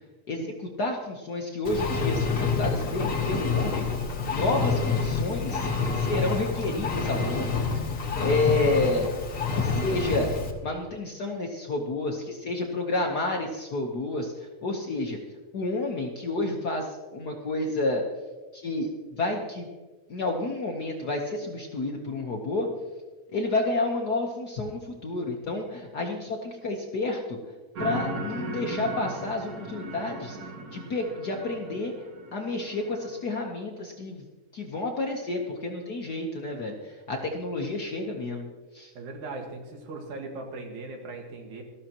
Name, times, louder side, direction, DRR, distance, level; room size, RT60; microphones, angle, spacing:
voice 1, 0.3-3.9 4.3-5.7 6.0-7.6 8.2-9.1 9.5-10.3 10.6-15.2 15.5-18.0 18.5-18.9 19.2-19.7 20.1-22.7 23.3-27.4 27.8-30.4 30.7-31.9 32.3-34.2 34.5-38.5 38.7-38.9, left 2 dB, 80° left, 1 dB, 0.8 m, -30 dB
Engine, 1.6-10.5, left 4 dB, 45° left, 1.1 m, -28 dB
sound 1, 27.8-33.3, right 2 dB, 55° right, 2.2 m, -37 dB
voice 2, 38.9-41.6, right 3 dB, 70° right, 2 dB, 3.0 m, -38 dB
18.5 x 13.5 x 3.0 m, 1.2 s
omnidirectional pair, 3.5 m